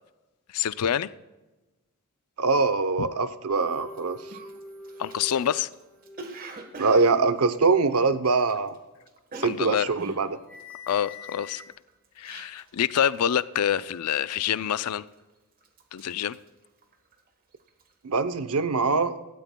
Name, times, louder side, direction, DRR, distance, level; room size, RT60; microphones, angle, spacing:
voice 1, 0.5-1.1 3.0-3.1 5.0-5.7 9.4-9.9 10.9-11.6 12.2-15.0 15.9-16.4, left 9 dB, 85° left, 16 dB, 0.4 m, -26 dB
voice 2, 2.4-4.2 6.8-8.8 9.4-10.3 18.0-19.2, right 4 dB, 75° right, 12 dB, 0.7 m, -23 dB
sound 1, 3.5-6.3 6.6-6.9 7.4-7.6 8.1-8.2 10.0-10.2 10.5-11.7, left 2 dB, 5° left, 4.1 m, -45 dB
Cough, 3.9-4.0 4.3-8.8 9.0-12.8 13.1-13.5 13.8-14.2 14.7-15.3 15.6-17.3 17.6-17.9, right 2 dB, 40° right, 1.3 m, -44 dB
17.0 x 12.5 x 2.2 m, 1.1 s
head